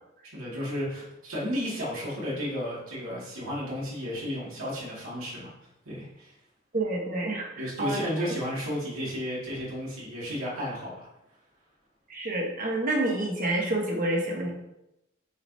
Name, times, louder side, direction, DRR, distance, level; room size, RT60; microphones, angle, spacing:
voice 1, 0.3-5.5 5.9-6.3 7.6-11.1, equal, 80° right, -6 dB, 2.3 m, -33 dB
voice 2, 6.7-8.0 12.1-14.5, right 1 dB, 40° right, 0 dB, 1.3 m, -28 dB
7.9 x 4.9 x 2.8 m, 0.89 s
head